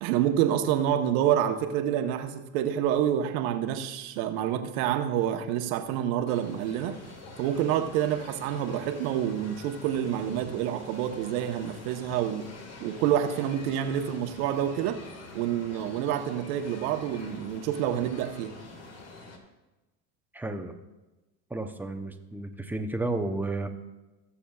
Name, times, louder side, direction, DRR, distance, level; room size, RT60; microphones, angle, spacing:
voice 1, 0.0-7.0 7.4-12.5 12.8-15.0 15.3-18.5, right 10 dB, 65° right, 6 dB, 1.2 m, -28 dB
sound 1, 6.3-19.4, left 3 dB, 35° left, 2.0 m, -46 dB
voice 2, 20.3-20.7 21.5-23.7, right 2 dB, 5° right, 6 dB, 0.7 m, -32 dB
20.5 x 7.0 x 2.4 m, 1.1 s
supercardioid pair, 105°, 44 cm